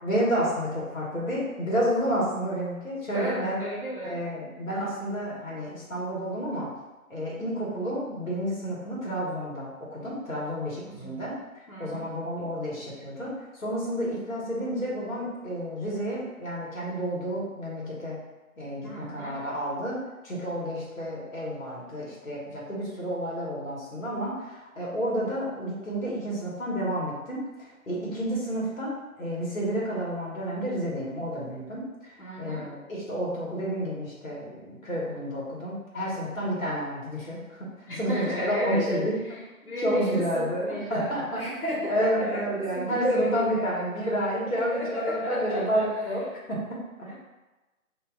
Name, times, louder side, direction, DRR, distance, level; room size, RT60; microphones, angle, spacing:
voice 1, 0.0-3.6 4.0-6.7 7.1-11.3 11.8-13.3 13.6-18.2 18.6-20.0 20.2-27.4 27.9-37.7 38.0-39.1 39.8-41.4 41.9-46.2 46.5-47.1, equal, 65° left, -5 dB, 1.3 m, -30 dB
voice 2, 3.1-4.2 10.8-11.2 11.7-12.1 18.8-19.4 32.2-32.7 37.9-39.3 39.6-43.7 44.7-45.9, equal, 80° left, -7 dB, 1.1 m, -32 dB
2.7 x 2.3 x 3.6 m, 1.1 s
figure-of-eight pair, 175°, 44 cm